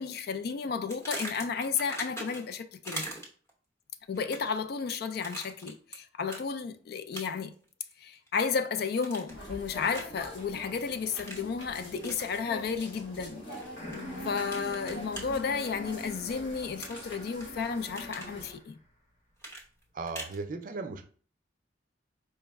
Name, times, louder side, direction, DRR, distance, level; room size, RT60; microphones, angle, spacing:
voice 1, 0.0-3.1 4.1-7.5 8.0-13.4 14.2-18.8, left 5 dB, 60° left, 0.3 m, -33 dB
sound 1, 0.9-2.5 2.8-3.5 4.1-4.6 5.2-6.0 6.3-6.4 7.1-7.5 7.9-8.6 9.0-9.4 9.9-10.2 11.2-11.5 12.0-12.2 13.5-14.0 14.5-15.2 16.8-17.4 17.8-18.3 19.4-20.4, right 1 dB, 15° left, 0.9 m, -41 dB
sound 2, 9.3-18.5, equal, 90° left, 1.3 m, -44 dB
sound 3, 13.8-18.7, left 1 dB, 45° left, 1.0 m, -45 dB
voice 2, 19.9-21.1, right 3 dB, 50° right, 0.4 m, -37 dB
4.5 x 2.0 x 3.4 m
head